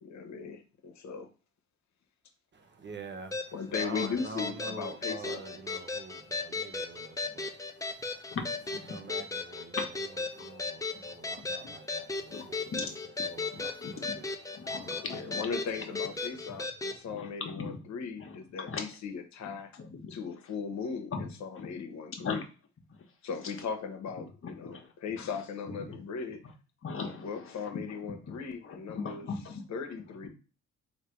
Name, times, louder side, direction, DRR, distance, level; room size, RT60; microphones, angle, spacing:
voice 1, 0.0-1.3 3.5-5.4 15.1-19.7 20.1-22.4 23.2-26.4 27.2-29.3 29.7-30.3, left 6 dB, 65° left, 1.0 m, -38 dB
voice 2, 2.5-8.4 8.7-16.6, right 4 dB, 35° right, 0.8 m, -47 dB
sound 1, 3.3-17.0, left 3 dB, 10° left, 0.5 m, -36 dB
voice 3, 13.5-14.2 14.5-15.5 16.5-16.6 17.1-17.3 17.5-17.8 18.2-18.4 18.7-18.8 19.8-20.1 21.1-21.3 21.6-21.7 22.2-22.3 24.4-24.8 25.7-26.0 26.8-27.3 28.3-28.4 28.6-29.6, left 4 dB, 45° left, 1.1 m, -38 dB
3.3 x 2.7 x 4.5 m
cardioid pair, 90°, 30 cm